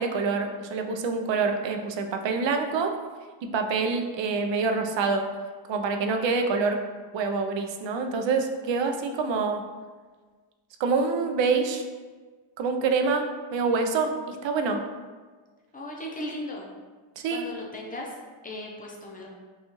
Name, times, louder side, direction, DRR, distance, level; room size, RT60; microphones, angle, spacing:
voice 1, 0.0-2.9 3.4-5.2 5.7-6.8 7.1-9.6 10.8-11.8 12.6-14.8 17.2-17.4, right 4 dB, 65° right, 5 dB, 0.5 m, -26 dB
voice 2, 15.7-16.7 17.3-18.1 18.4-19.3, left 1 dB, 20° left, -2 dB, 0.5 m, -37 dB
5.5 x 2.3 x 2.9 m, 1.4 s
wide cardioid pair, 175°, 49 cm